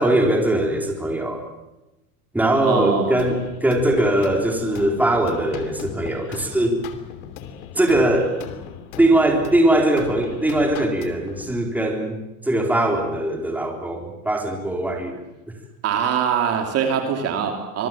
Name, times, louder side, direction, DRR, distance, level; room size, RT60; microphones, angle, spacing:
voice 1, 0.0-1.4 2.3-6.8 7.7-8.4 9.0-15.2, right 1 dB, 5° right, 2 dB, 3.9 m, -21 dB
voice 2, 2.5-3.1 15.8-17.9, right 7 dB, 35° right, 5 dB, 2.8 m, -23 dB
sound 1, 3.2-11.5, left 9 dB, 70° left, 3.0 m, -37 dB
25.5 x 22.0 x 7.4 m, 0.98 s
supercardioid pair, 150°, 43 cm